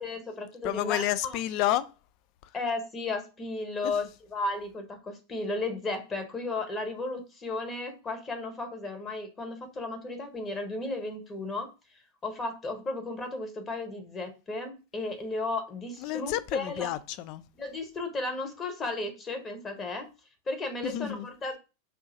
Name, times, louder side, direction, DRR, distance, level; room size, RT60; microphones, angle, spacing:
voice 1, 0.0-1.4 2.5-11.7 12.2-16.9 17.5-20.1 20.5-21.6, left 2 dB, 20° left, 1.1 m, -34 dB
voice 2, 0.6-1.9 3.8-3.9 16.0-17.4 20.8-21.3, left 13 dB, 45° left, 0.3 m, -30 dB
5.4 x 2.7 x 2.7 m
figure-of-eight pair, 90°, 0 cm